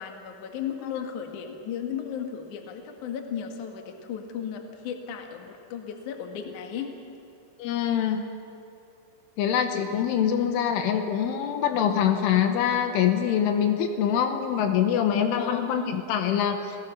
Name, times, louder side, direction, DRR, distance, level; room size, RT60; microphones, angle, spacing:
voice 1, 0.0-6.9 15.3-15.7, left 8 dB, 55° left, 4 dB, 2.4 m, -35 dB
voice 2, 7.6-8.2 9.4-16.8, left 9 dB, 75° left, 6 dB, 3.4 m, -24 dB
29.5 x 17.0 x 7.0 m, 2.6 s
omnidirectional pair, 6.0 m